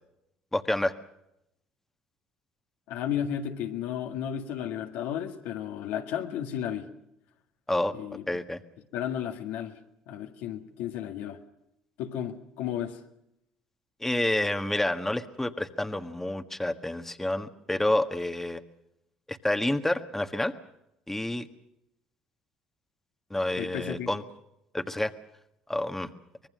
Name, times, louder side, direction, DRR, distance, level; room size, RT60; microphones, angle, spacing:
voice 1, 0.5-0.9 7.7-7.9 8.3-8.6 14.0-18.6 19.3-20.5 21.1-21.5 23.3-24.2 24.7-25.1 25.7-26.1, left 1 dB, 10° left, 1.6 m, -28 dB
voice 2, 2.9-6.9 7.9-8.2 8.9-9.8 10.1-11.4 12.0-13.0 23.6-24.1, left 9 dB, 75° left, 1.8 m, -33 dB
25.0 x 20.0 x 6.4 m
supercardioid pair, 70°, 3 cm